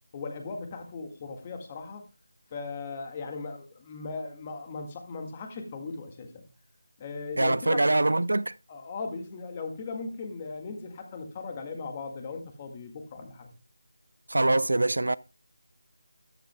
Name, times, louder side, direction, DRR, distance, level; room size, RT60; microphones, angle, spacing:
voice 1, 0.1-2.1 2.5-6.5 7.0-8.0 8.7-13.5, left 4 dB, 25° left, 1.8 m, -38 dB
voice 2, 7.4-8.5 14.3-15.2, right 2 dB, 75° right, 0.4 m, -24 dB
13.5 x 10.5 x 2.2 m
figure-of-eight pair, 165°, 0 cm